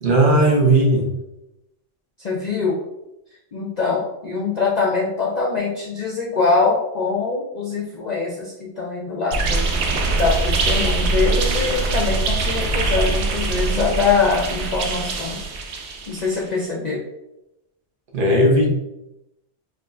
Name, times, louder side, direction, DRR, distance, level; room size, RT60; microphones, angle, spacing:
voice 1, 0.0-1.1 18.1-18.7, right 1 dB, 50° right, -1 dB, 1.0 m, -16 dB
voice 2, 2.2-2.8 3.5-9.7 10.2-15.5 16.1-17.0, left 4 dB, 50° left, -3 dB, 0.6 m, -23 dB
sound 1, 9.3-16.4, right 3 dB, 75° right, 0.9 m, -22 dB
4.8 x 2.6 x 2.4 m, 0.89 s
omnidirectional pair, 1.2 m